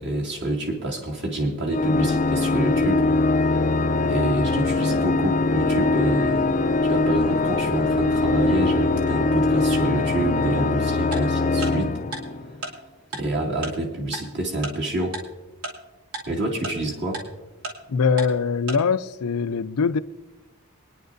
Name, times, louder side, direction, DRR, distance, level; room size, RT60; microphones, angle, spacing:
voice 1, 0.0-3.0 4.0-11.9 13.1-15.2 16.3-17.2, right 1 dB, 50° right, 2.3 m, -27 dB
Organ, 1.7-12.7, left 3 dB, 35° left, 0.5 m, -22 dB
Tick-tock, 11.1-11.2 11.6-11.7 12.1-12.2 12.6-12.7 13.1-13.2 13.6-13.7 14.1-14.2 14.6-14.7 15.1-15.2 15.6-15.7 16.1-16.2 16.6-16.7 17.1-17.2 17.6-17.7 18.2-18.3 18.7-18.8, right 2 dB, 80° right, 2.6 m, -31 dB
voice 2, 17.9-20.0, left 5 dB, 80° left, 0.5 m, -22 dB
24.0 x 10.0 x 2.6 m
head